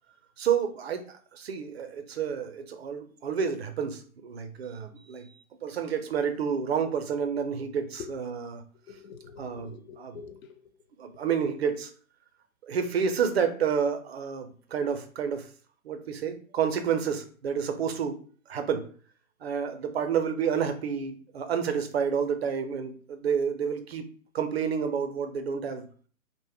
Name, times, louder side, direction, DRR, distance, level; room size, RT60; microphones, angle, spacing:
voice 1, 0.4-1.1 1.3-5.3 5.6-8.6 9.4-10.1 11.0-11.9 12.6-15.5 15.8-18.2 18.5-18.9 19.4-24.1 24.3-25.8, right 7 dB, 50° right, 0.4 m, -29 dB
voice 2, 8.9-10.8 11.1-11.2, left 7 dB, 75° left, 0.6 m, -45 dB
2.0 x 2.0 x 3.3 m
hypercardioid pair, 140°, 41 cm